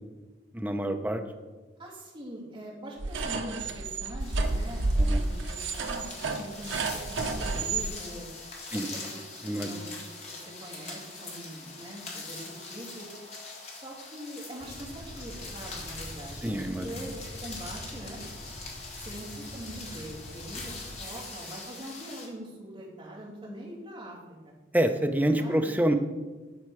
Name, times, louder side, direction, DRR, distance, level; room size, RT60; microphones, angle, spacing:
voice 1, 0.5-1.2 5.1-5.2 8.7-8.9 9.4-9.7 16.4-16.9 24.7-25.9, right 1 dB, 10° right, 5 dB, 0.5 m, -26 dB
voice 2, 1.8-8.3 8.7-9.9 10.2-13.1 13.5-16.5 16.8-18.2 18.9-24.5 25.4-25.8, right 1 dB, 25° right, -6 dB, 2.4 m, -43 dB
sound 1, 3.0-7.9, right 3 dB, 80° right, 0.7 m, -30 dB
sound 2, 4.2-22.3, left 3 dB, 35° left, 1.6 m, -43 dB
sound 3, 14.6-21.0, equal, 50° right, 2.7 m, -45 dB
12.0 x 4.3 x 4.8 m, 1.3 s
head